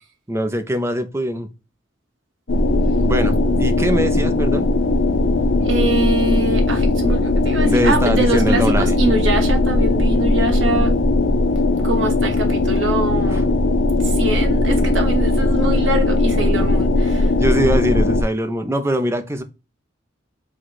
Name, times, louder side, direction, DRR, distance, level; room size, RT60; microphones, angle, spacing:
voice 1, 0.3-1.5 3.0-4.7 7.6-9.0 13.1-13.4 17.4-19.4, equal, 15° right, 0.5 m, -22 dB
sound 1, 2.5-18.2, left 2 dB, 75° left, 0.6 m, -18 dB
voice 2, 5.6-11.0 11.8-13.5 14.0-17.3, right 1 dB, 75° right, 1.2 m, -23 dB
4.7 x 2.2 x 4.0 m
head